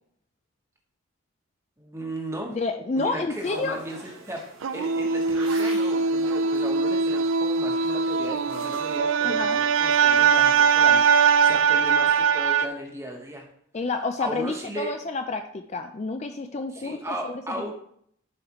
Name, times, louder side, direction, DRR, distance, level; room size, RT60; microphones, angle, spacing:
voice 1, 1.8-2.6 2.9-4.5 4.7-13.5 14.2-14.9 16.7-17.7, right 1 dB, 15° right, 1 dB, 1.1 m, -36 dB
voice 2, 2.5-3.8 9.2-9.6 13.7-17.0, left 3 dB, 30° left, 7 dB, 0.4 m, -29 dB
sound 1, 3.4-9.0, right 2 dB, 80° right, 1.9 m, -43 dB
sound 2, 4.6-12.7, right 6 dB, 65° right, 0.4 m, -21 dB
11.0 x 4.8 x 3.0 m, 0.67 s
head